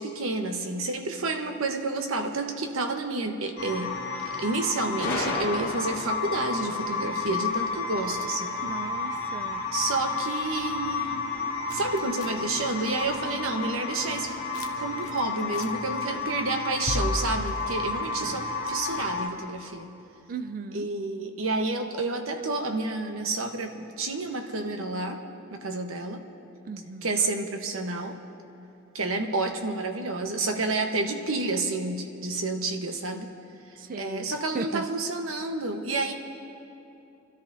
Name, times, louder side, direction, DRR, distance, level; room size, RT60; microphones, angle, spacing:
voice 1, 0.0-3.9 4.2-8.5 9.7-11.3 11.7-14.3 14.8-19.9 20.7-25.2 25.5-26.2 27.0-28.2 28.9-33.3 33.9-36.1, right 2 dB, 75° right, 4 dB, 1.1 m, -30 dB
sound 1, 3.6-19.3, left 4 dB, 55° left, 2.1 m, -32 dB
Gunshot gunfire, 5.0-6.2, left 1 dB, 15° left, 3.8 m, -31 dB
voice 2, 8.6-9.7 18.2-18.4 20.3-20.9 26.7-27.2 33.8-34.9, right 4 dB, 40° right, 10 dB, 0.4 m, -37 dB
sound 2, 11.7-13.2 13.5-13.6 14.0-14.7 15.0-16.2 16.5-18.6, left 1 dB, 80° left, 0.8 m, -34 dB
27.0 x 13.5 x 2.7 m, 2.8 s
head